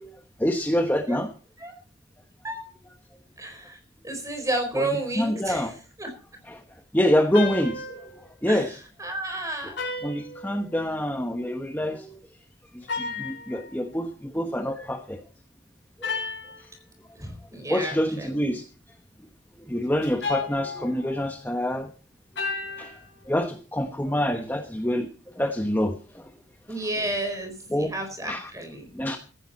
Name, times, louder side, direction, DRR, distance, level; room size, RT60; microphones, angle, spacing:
voice 1, 0.4-1.3 4.8-4.9 5.2-5.7 6.5-6.6 6.9-7.8 8.4-8.8 10.0-12.1 13.0-15.2 17.7-18.6 19.7-21.9 22.8-22.9 23.3-25.1 25.4-25.9 27.7-27.9 28.3-28.5 28.9-29.2, equal, 10° left, 5 dB, 1.1 m, -26 dB
voice 2, 3.4-3.8 4.0-6.1 8.5-8.7 9.0-9.8 17.1-18.5 26.7-28.9, right 1 dB, 20° right, 6 dB, 4.4 m, -31 dB
sound 1, 7.3-8.1 9.8-10.9 12.8-13.8 16.0-16.6 20.0-21.3 22.4-23.1, left 4 dB, 75° left, 5.5 m, -33 dB
16.0 x 14.0 x 4.2 m, 0.38 s
head